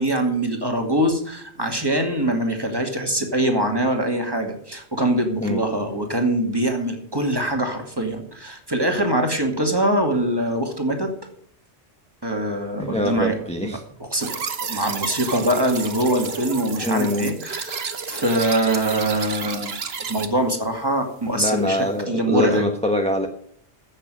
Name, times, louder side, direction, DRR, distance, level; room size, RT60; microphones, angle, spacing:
voice 1, 0.0-11.1 12.2-13.4 14.0-19.7 20.1-22.7, right 1 dB, 20° right, 3 dB, 2.3 m, -23 dB
voice 2, 12.8-13.8 16.8-17.3 21.4-23.3, left 1 dB, 5° left, 3 dB, 1.2 m, -23 dB
sound 1, 14.2-20.3, right 5 dB, 65° right, 1.4 m, -31 dB
15.0 x 6.6 x 7.8 m, 0.63 s
omnidirectional pair, 1.1 m